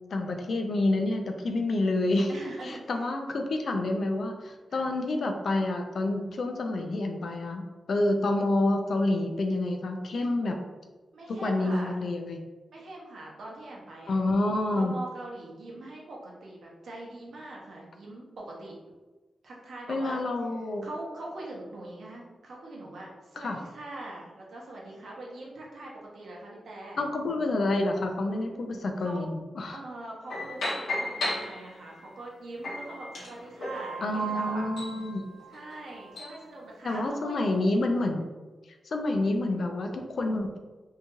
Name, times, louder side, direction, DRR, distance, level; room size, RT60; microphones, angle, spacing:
voice 1, 0.1-2.3 2.6-10.6 11.3-12.4 14.1-14.9 19.9-20.9 23.4-23.6 27.0-29.8 34.0-35.2 36.8-38.2 38.9-40.6, left 2 dB, 55° left, 4 dB, 0.3 m, -28 dB
voice 2, 2.3-2.9 4.7-4.9 11.1-12.0 12.7-14.2 14.7-18.8 19.4-20.2 20.8-27.0 29.0-29.3 29.7-34.7 35.5-37.8, right 1 dB, 65° right, -3 dB, 0.7 m, -42 dB
sound 1, 30.3-32.0 32.6-36.4, equal, 85° left, 0.8 m, -35 dB
2.7 x 2.3 x 2.9 m, 1.2 s
wide cardioid pair, 150°, 0 cm